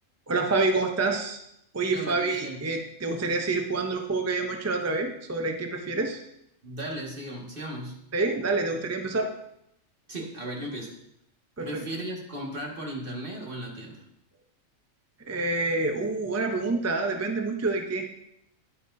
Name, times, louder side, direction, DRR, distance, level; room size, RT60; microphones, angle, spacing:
voice 1, 0.3-1.4 1.7-6.2 8.1-9.3 11.6-11.8 15.3-18.1, right 3 dB, 25° right, 4 dB, 0.3 m, -27 dB
voice 2, 1.9-2.6 6.6-8.0 10.1-10.9 11.6-14.0, right 1 dB, 45° right, -1 dB, 1.8 m, -36 dB
10.5 x 8.7 x 2.6 m, 0.77 s
omnidirectional pair, 1.3 m